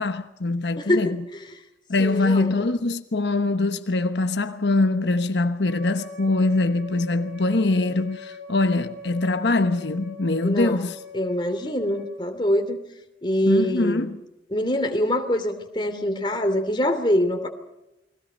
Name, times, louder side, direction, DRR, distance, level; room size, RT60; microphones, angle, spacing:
voice 1, 0.0-1.2 1.9-11.0 13.4-14.2, left 2 dB, 80° left, 1.1 m, -23 dB
voice 2, 0.8-1.5 2.0-2.6 10.4-10.9 11.1-12.8 13.2-14.1 14.5-17.5, equal, 25° left, 3.0 m, -24 dB
Wind instrument woodwind instrument, 5.6-12.2, left 5 dB, 75° right, 6.2 m, -42 dB
29.5 x 22.0 x 5.3 m
head